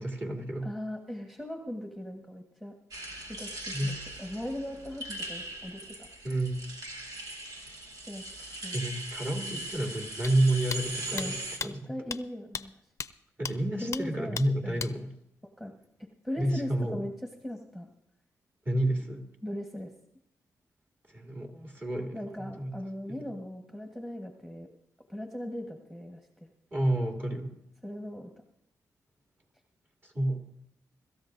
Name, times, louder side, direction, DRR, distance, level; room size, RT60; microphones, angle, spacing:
voice 1, 0.0-0.7 3.7-3.9 6.2-6.6 8.7-11.9 13.4-15.1 16.4-17.0 18.6-19.2 21.1-22.7 23.1-23.2 26.7-27.5 30.0-30.4, right 1 dB, 35° right, 0 dB, 2.9 m, -30 dB
voice 2, 0.6-2.7 3.3-6.1 8.1-8.2 8.5-8.8 11.1-11.4 11.9-12.7 13.8-14.4 14.6-14.8 15.6-15.7 16.2-17.1 17.4-17.9 19.4-19.9 22.1-24.7 25.1-26.5 27.8-28.3, left 1 dB, 5° right, 2 dB, 1.4 m, -39 dB
sound 1, 2.9-11.6, right 1 dB, 80° right, 2.2 m, -40 dB
sound 2, 10.2-10.3 10.7-10.8 11.2-11.3 11.6-11.7 12.1-12.2 12.5-12.6 13.0-13.1 13.5-13.6 13.9-14.0 14.4-14.5 14.8-14.9, left 6 dB, 55° left, 0.5 m, -35 dB
24.5 x 13.5 x 2.6 m, 0.75 s
cardioid pair, 85°, 6 cm